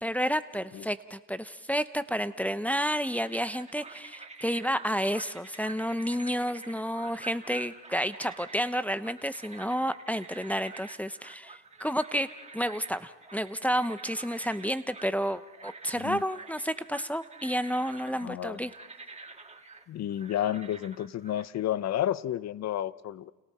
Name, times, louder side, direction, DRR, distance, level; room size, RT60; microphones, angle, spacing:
voice 1, 0.0-12.3 12.5-18.7, equal, 5° left, 0.7 m, -30 dB
sound 1, 3.2-21.4, right 3 dB, 20° right, 1.6 m, -48 dB
voice 2, 18.2-18.6 19.9-23.3, left 11 dB, 60° left, 0.7 m, -31 dB
30.0 x 29.5 x 4.3 m
cardioid pair, 90°, 30 cm